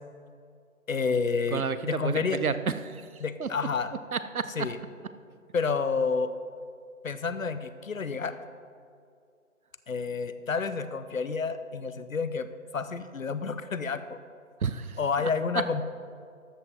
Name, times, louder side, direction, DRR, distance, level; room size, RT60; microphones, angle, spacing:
voice 1, 0.9-2.4 3.2-3.9 4.6-4.8 5.5-6.3 7.0-8.4 9.9-12.5 12.7-14.2 15.0-15.8, left 5 dB, 70° left, 12 dB, 0.8 m, -29 dB
voice 2, 1.5-3.0 3.4-3.5 4.1-4.4 14.6-15.3, right 6 dB, 85° right, 12 dB, 0.8 m, -31 dB
12.5 x 7.5 x 4.4 m, 2.3 s
figure-of-eight pair, 165°, 42 cm